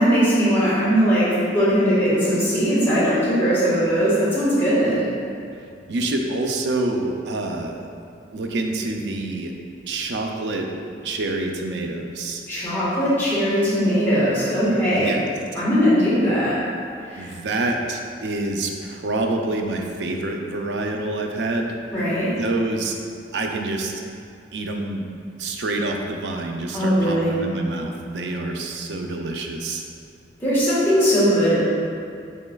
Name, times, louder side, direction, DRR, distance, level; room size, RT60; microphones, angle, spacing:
voice 1, 0.0-5.1 12.5-15.1 15.5-16.6 17.0-17.3 21.9-22.3 26.7-27.3 30.4-31.6, equal, 15° left, -11 dB, 1.4 m, -19 dB
voice 2, 5.9-7.8 8.3-9.5 9.9-10.7 11.0-12.4 14.9-15.3 17.1-21.8 22.3-23.0 23.3-24.0 24.5-25.1 25.4-29.8, right 2 dB, 75° right, 2 dB, 0.4 m, -27 dB
6.4 x 3.1 x 2.3 m, 2.4 s
head